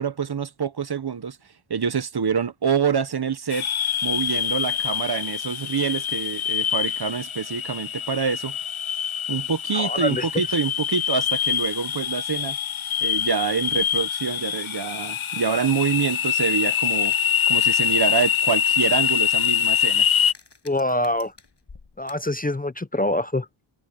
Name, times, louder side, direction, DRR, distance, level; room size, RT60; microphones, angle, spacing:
voice 1, 0.0-1.4 1.7-3.7 4.0-8.6 9.3-12.6 13.0-17.1 17.5-20.1, right 6 dB, 55° right, 1.1 m, -26 dB
sound 1, 3.5-20.3, left 9 dB, 80° left, 0.9 m, -25 dB
voice 2, 9.7-10.5 20.6-21.3 22.0-23.5, left 1 dB, 20° left, 0.7 m, -25 dB
sound 2, 17.0-22.3, left 4 dB, 60° left, 7.8 m, -50 dB
wide cardioid pair, 90°, 47 cm